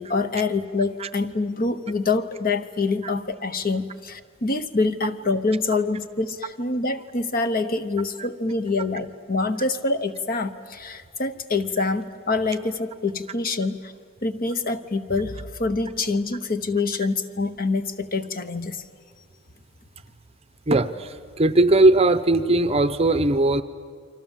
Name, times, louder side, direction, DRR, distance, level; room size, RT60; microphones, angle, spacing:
voice 1, 0.0-13.9 14.2-18.8, left 3 dB, 45° left, 11 dB, 1.0 m, -26 dB
voice 2, 20.7-23.6, right 2 dB, 30° right, 12 dB, 0.7 m, -19 dB
29.0 x 24.5 x 7.4 m, 2.1 s
head